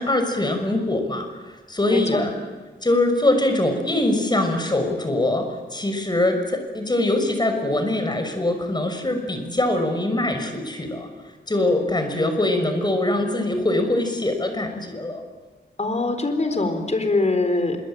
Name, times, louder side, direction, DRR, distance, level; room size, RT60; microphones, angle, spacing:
voice 1, 0.0-2.3 2.8-11.1 11.5-15.2, left 1 dB, 25° left, 6 dB, 6.0 m, -23 dB
voice 2, 1.9-2.2 15.8-17.8, left 2 dB, 40° left, 7 dB, 4.4 m, -23 dB
25.5 x 23.5 x 8.9 m, 1.4 s
wide cardioid pair, 90°, 18 cm